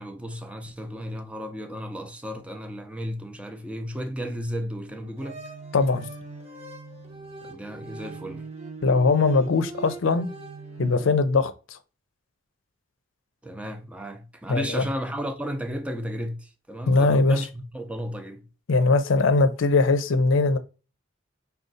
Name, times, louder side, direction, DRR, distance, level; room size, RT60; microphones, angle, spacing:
voice 1, 0.0-5.4 7.4-8.4 13.4-18.5, equal, 5° right, 0.5 m, -34 dB
sound 1, 4.9-11.1, right 3 dB, 35° right, 0.8 m, -40 dB
voice 2, 5.7-6.1 8.8-10.3 10.8-11.5 14.5-14.9 16.9-17.4 18.7-20.6, left 3 dB, 80° left, 0.5 m, -20 dB
5.0 x 2.3 x 3.9 m
head